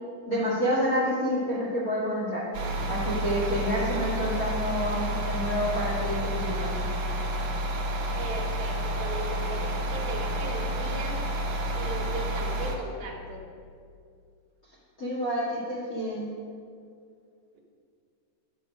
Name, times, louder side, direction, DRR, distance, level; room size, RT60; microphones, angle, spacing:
voice 1, 0.3-2.4 2.9-6.8 15.0-16.3, equal, 35° left, -6 dB, 1.6 m, -28 dB
sound 1, 2.5-12.8, equal, 60° right, 1.9 m, -30 dB
voice 2, 8.1-11.2 11.7-13.4 17.5-17.6, right 3 dB, 80° right, 0 dB, 3.1 m, -37 dB
11.5 x 6.9 x 5.2 m, 2.3 s
omnidirectional pair, 4.2 m